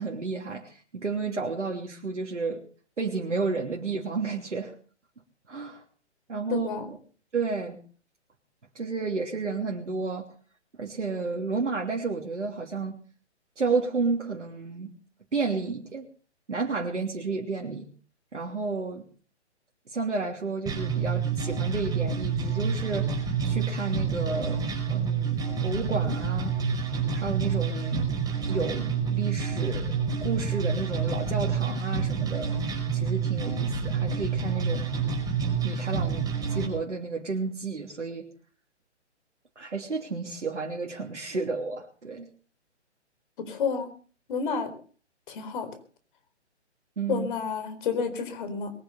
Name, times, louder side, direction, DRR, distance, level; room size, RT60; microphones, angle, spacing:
voice 1, 0.0-2.6 3.0-4.7 5.5-5.8 6.3-7.0 7.3-7.8 8.7-10.3 10.8-12.9 13.6-14.9 15.3-16.1 16.5-17.9 18.3-19.0 19.9-24.6 24.9-26.5 27.1-28.1 28.5-29.9 30.2-32.5 32.9-34.9 35.6-38.2 39.6-42.3 47.0-47.3, right 4 dB, 80° right, 0 dB, 3.2 m, -31 dB
voice 2, 6.5-6.9 43.4-43.9 44.3-44.7 45.3-45.7 47.1-48.7, left 6 dB, 45° left, 10 dB, 4.3 m, -30 dB
sound 1, 20.7-36.7, right 6 dB, 10° right, 5.0 m, -28 dB
22.5 x 8.8 x 6.7 m, 0.43 s
figure-of-eight pair, 140°, 35 cm